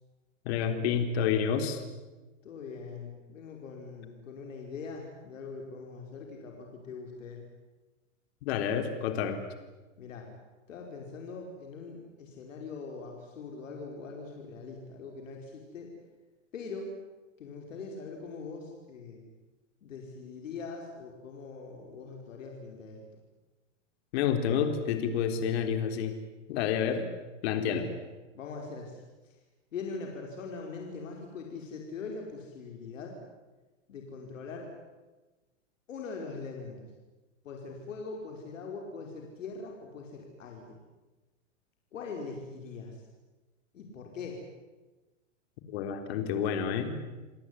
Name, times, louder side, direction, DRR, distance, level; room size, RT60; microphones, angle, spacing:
voice 1, 0.5-1.8 8.4-9.4 24.1-26.2 26.5-27.1 27.4-27.8 45.7-46.9, left 7 dB, 55° left, 7 dB, 3.9 m, -29 dB
voice 2, 2.4-7.4 10.0-10.3 10.7-15.9 16.5-16.9 17.4-19.3 19.8-23.0 27.6-27.9 28.3-29.4 29.7-33.2 33.9-34.7 35.9-36.9 37.4-40.8 41.9-43.0 43.7-44.4, left 4 dB, 80° left, 1 dB, 5.3 m, -42 dB
29.5 x 18.5 x 9.9 m, 1.2 s
hypercardioid pair, 130°, 38 cm